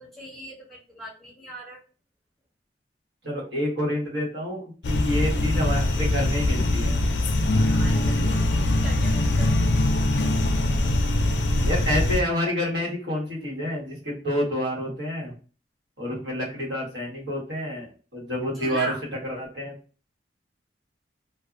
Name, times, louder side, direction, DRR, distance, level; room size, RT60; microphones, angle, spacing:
voice 1, 0.0-1.8 7.6-9.6 18.5-19.0, equal, ahead, -4 dB, 0.7 m, -39 dB
voice 2, 3.2-7.0 11.6-15.3 16.0-18.9 19.2-19.7, left 1 dB, 70° right, -3 dB, 1.2 m, -28 dB
sound 1, 4.8-12.2, left 1 dB, 70° left, 0.4 m, -22 dB
2.5 x 2.1 x 2.4 m, 0.37 s
head